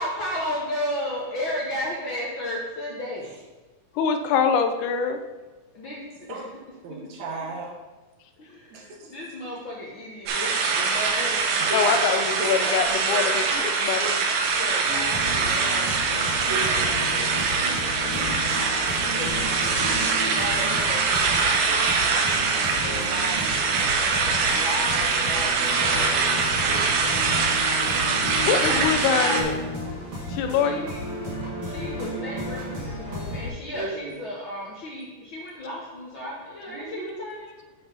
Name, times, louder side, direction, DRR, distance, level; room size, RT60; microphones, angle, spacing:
voice 1, 0.0-3.3 5.7-6.4 8.4-11.6 14.5-16.3 17.6-22.2 22.6-23.6 24.0-27.2 27.7-29.6 30.6-31.0 31.5-37.5, left 1 dB, 60° left, -4 dB, 1.3 m, -35 dB
voice 2, 4.0-5.2 11.7-14.2 28.4-29.5 30.3-30.8, left 6 dB, 80° left, 7 dB, 2.1 m, -24 dB
voice 3, 6.8-7.8 8.7-9.1 11.7-13.7 16.5-17.6 33.7-34.2 36.7-37.2, right 3 dB, 65° right, 1 dB, 2.2 m, -35 dB
sound 1, 10.3-29.4, right 4 dB, 90° right, 2.5 m, -23 dB
sound 2, 14.8-33.5, left 1 dB, 50° right, 2.9 m, -33 dB
7.8 x 4.7 x 5.4 m, 1.2 s
omnidirectional pair, 3.6 m